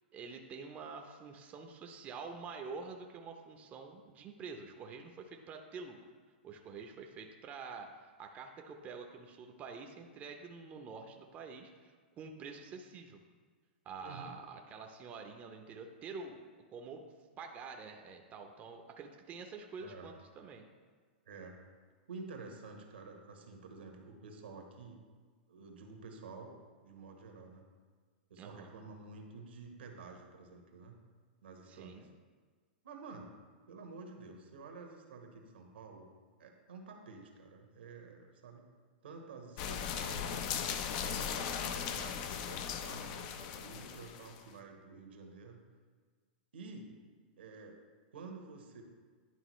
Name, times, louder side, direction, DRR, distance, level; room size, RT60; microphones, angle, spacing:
voice 1, 0.1-6.0 6.4-13.2 13.9-16.4 16.7-17.0 17.4-20.7 28.4-28.7 31.7-32.1, right 4 dB, 25° right, 3 dB, 0.6 m, -47 dB
voice 2, 14.0-14.3 19.8-20.1 21.2-21.6 22.1-25.0 25.5-26.5 26.8-27.6 28.3-31.0 31.4-32.1 32.8-33.3 33.7-36.1 36.4-38.7 39.0-40.4 41.0-45.6 46.5-46.9 47.4-47.8 48.1-48.8, right 4 dB, 80° right, 3 dB, 1.2 m, -50 dB
sound 1, 39.6-44.4, left 8 dB, 50° left, 0.5 m, -38 dB
11.0 x 3.7 x 3.1 m, 1.5 s
hypercardioid pair, 125°, 6 cm